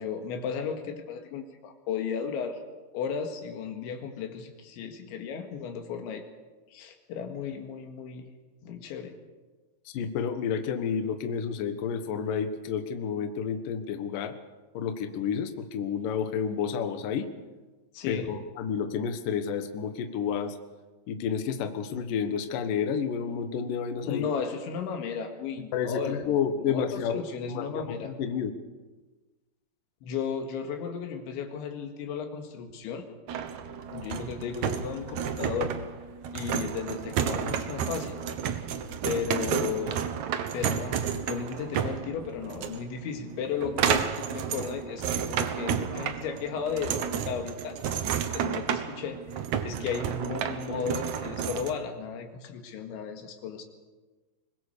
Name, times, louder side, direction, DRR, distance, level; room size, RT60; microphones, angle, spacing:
voice 1, 0.0-2.6 2.9-6.2 6.7-8.3 8.6-9.2 17.9-18.3 24.0-28.1 30.0-33.1 33.9-35.7 36.3-38.2 39.0-40.1 40.5-47.8 48.3-49.2 49.6-53.6, left 6 dB, 85° left, 4 dB, 4.3 m, -34 dB
voice 2, 9.9-14.3 14.7-17.3 18.1-20.5 21.1-24.2 25.7-27.2 27.5-28.5, left 7 dB, 60° left, 8 dB, 2.6 m, -30 dB
Foosball Table, 33.3-51.7, right 8 dB, 80° right, 1.6 m, -31 dB
23.5 x 21.0 x 6.9 m, 1.3 s
omnidirectional pair, 5.2 m